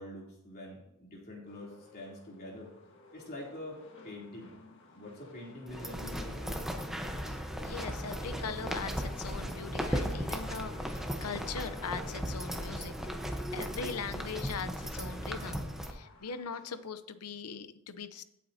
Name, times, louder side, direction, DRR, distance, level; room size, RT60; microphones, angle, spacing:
voice 1, 0.0-2.7 3.1-4.5 4.9-6.7, left 1 dB, 45° left, -3 dB, 3.2 m, -45 dB
sound 1, 1.5-16.8, left 1 dB, 60° left, 1.6 m, -54 dB
sound 2, 5.7-15.9, equal, ahead, 0.9 m, -36 dB
voice 2, 7.6-12.9 13.3-18.2, left 5 dB, 85° left, 12 dB, 0.7 m, -41 dB
16.5 x 8.3 x 2.8 m, 0.83 s
head